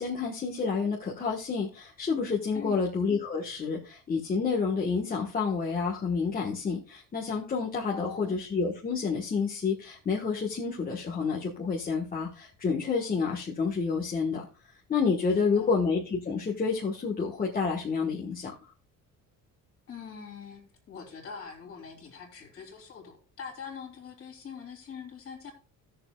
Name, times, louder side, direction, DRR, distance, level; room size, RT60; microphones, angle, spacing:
voice 1, 0.0-14.5 14.9-18.5, left 5 dB, 25° left, -3 dB, 1.3 m, -29 dB
voice 2, 2.5-2.9 7.9-8.4 15.4-15.7 19.9-20.6 20.9-25.5, left 6 dB, 45° left, 3 dB, 3.1 m, -43 dB
17.5 x 6.8 x 2.3 m, 0.34 s
cardioid pair, 165°, 33 cm